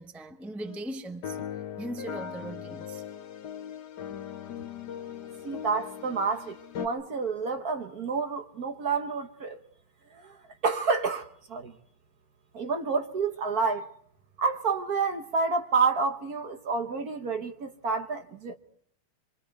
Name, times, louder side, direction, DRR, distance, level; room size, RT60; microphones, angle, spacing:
voice 1, 0.0-1.4 1.8-3.0 5.4-5.5, right 1 dB, ahead, 0.9 m, -39 dB
sound 1, 0.7-0.8 1.2-6.9, left 9 dB, 55° left, 1.6 m, -39 dB
voice 2, 5.4-9.6 10.1-10.4 10.6-11.7 12.5-13.9 14.4-18.6, right 4 dB, 50° right, 1.5 m, -29 dB
26.5 x 24.5 x 4.7 m
omnidirectional pair, 2.3 m